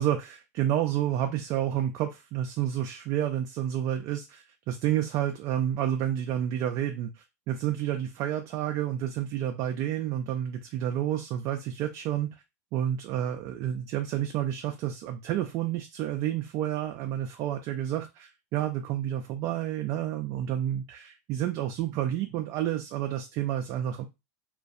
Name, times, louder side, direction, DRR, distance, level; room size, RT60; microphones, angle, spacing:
voice 1, 0.0-12.3 12.7-24.0, right 11 dB, 45° right, 5 dB, 0.3 m, -30 dB
2.4 x 2.2 x 2.5 m, 0.24 s
hypercardioid pair, 120°, 8 cm